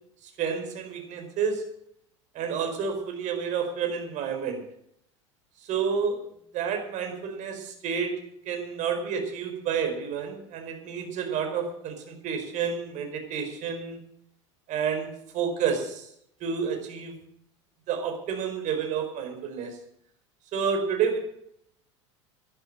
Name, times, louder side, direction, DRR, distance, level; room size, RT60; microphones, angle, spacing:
voice 1, 0.4-1.6 2.3-4.6 5.6-6.2 6.5-8.1 8.4-14.0 14.7-16.1 16.4-17.2 17.9-19.8 20.5-21.2, right 6 dB, 50° right, 5 dB, 4.8 m, -30 dB
12.5 x 12.0 x 7.6 m, 0.72 s
hypercardioid pair, 80°, 16 cm